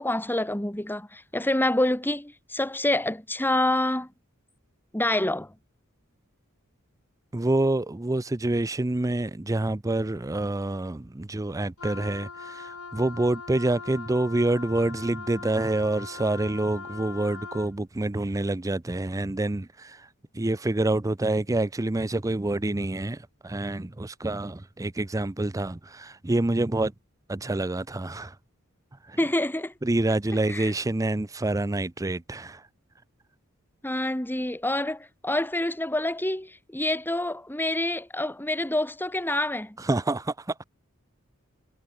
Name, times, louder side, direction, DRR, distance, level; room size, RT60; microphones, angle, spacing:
voice 1, 0.0-4.1 4.9-5.5 29.2-29.7 30.5-30.7 33.8-39.8, left 1 dB, 10° left, 2.0 m, -27 dB
voice 2, 7.3-26.9 27.3-28.4 29.0-29.2 29.8-32.7 39.8-40.6, right 2 dB, 15° right, 0.5 m, -27 dB
Wind instrument woodwind instrument, 11.8-17.8, left 5 dB, 80° left, 4.0 m, -41 dB
head